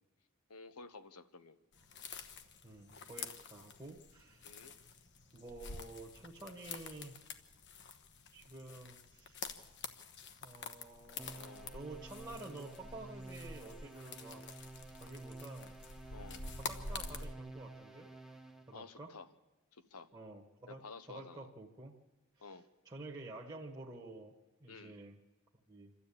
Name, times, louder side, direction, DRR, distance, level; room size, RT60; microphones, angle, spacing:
voice 1, 0.5-1.5 4.4-4.7 11.3-11.8 16.1-16.4 18.7-19.3 19.7-20.1 20.7-21.5 22.4-22.7 24.7-25.0, left 4 dB, 90° left, 11 dB, 1.1 m, -52 dB
sound 1, 1.7-17.3, left 4 dB, 50° left, 1.1 m, -48 dB
voice 2, 2.6-4.6 5.3-7.2 8.3-9.4 10.4-14.4 15.0-15.7 16.5-18.1 18.7-19.1 20.1-20.8 21.1-22.0 22.4-22.6 22.8-24.3 24.6-25.2 25.7-25.9, right 2 dB, 20° right, -3 dB, 1.5 m, -50 dB
sound 2, 11.2-18.7, right 2 dB, ahead, 1.2 m, -52 dB
27.0 x 12.5 x 8.7 m, 1.1 s
head